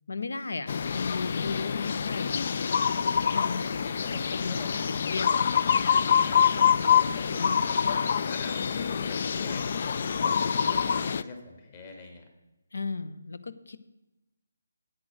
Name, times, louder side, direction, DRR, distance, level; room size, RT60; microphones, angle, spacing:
voice 1, 0.1-2.3 3.1-3.7 4.1-4.7 5.1-5.4 6.5-6.8 7.4-7.7 12.7-13.8, left 4 dB, 65° left, 13 dB, 0.7 m, -35 dB
sound 1, 0.7-11.2, left 7 dB, 45° left, 0.3 m, -26 dB
voice 2, 1.5-1.9 3.1-4.8 6.1-7.8 8.1-12.3, left 3 dB, 30° left, 3 dB, 2.0 m, -45 dB
8.9 x 8.6 x 6.2 m, 0.99 s
figure-of-eight pair, 150°, 0 cm